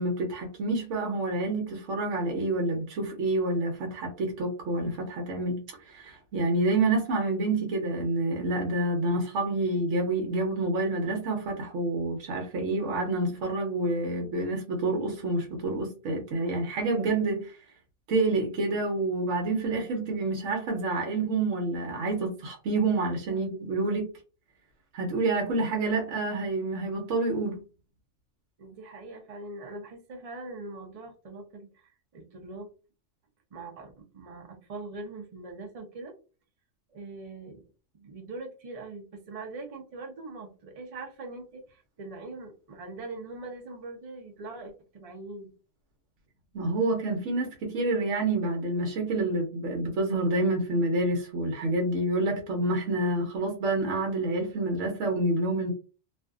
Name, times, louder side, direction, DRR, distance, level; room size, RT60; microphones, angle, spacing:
voice 1, 0.0-17.6 18.1-24.1 24.9-27.6 46.5-55.7, right 2 dB, 75° right, 0 dB, 1.1 m, -28 dB
voice 2, 28.6-32.7 33.5-36.1 36.9-37.6 37.9-45.5, right 2 dB, 40° right, 3 dB, 0.5 m, -42 dB
2.5 x 2.5 x 2.3 m, 0.35 s
omnidirectional pair, 1.3 m